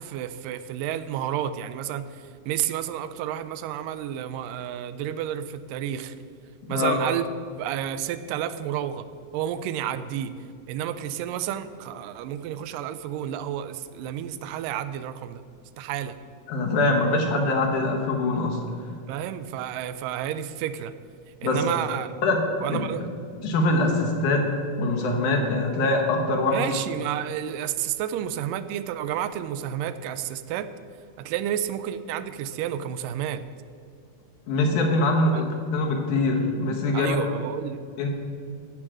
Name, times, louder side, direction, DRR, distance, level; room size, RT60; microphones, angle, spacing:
voice 1, 0.0-6.2 6.7-7.2 7.6-9.1 9.3-10.3 10.7-15.4 15.8-16.2 19.1-20.9 21.4-22.1 22.6-23.1 26.5-30.7 31.2-33.4 35.3-35.4 36.9-37.8, right 10 dB, 90° right, 12 dB, 2.2 m, -30 dB
voice 2, 16.5-18.6 21.4-21.7 22.2-22.4 22.7-22.8 23.4-24.5 24.8-26.6 34.5-35.5 35.7-37.2 38.0-38.1, left 2 dB, 70° left, 2 dB, 2.8 m, -23 dB
14.0 x 4.9 x 7.5 m, 2.3 s
omnidirectional pair, 3.8 m